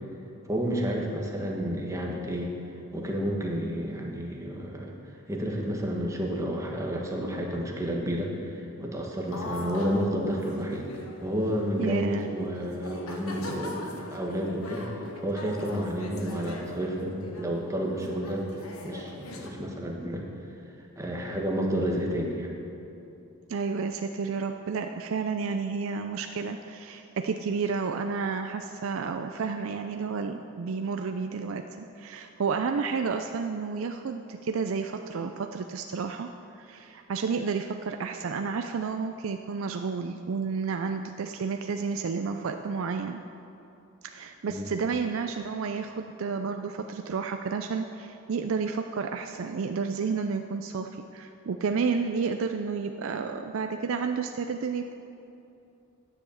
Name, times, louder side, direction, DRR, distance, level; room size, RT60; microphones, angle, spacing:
voice 1, 0.4-2.5 2.9-4.9 5.3-10.9 11.2-14.9 15.2-18.5 18.8-20.3 21.0-22.5 44.5-44.7, equal, 15° right, -1 dB, 1.3 m, -30 dB
sound 1, 9.3-11.8 12.4-12.5 12.8-19.5, left 2 dB, 85° left, 1.3 m, -40 dB
voice 2, 11.8-12.3 23.5-36.3 36.5-43.2 44.0-54.9, right 5 dB, 70° right, 6 dB, 0.4 m, -31 dB
10.0 x 7.7 x 7.0 m, 2.8 s
head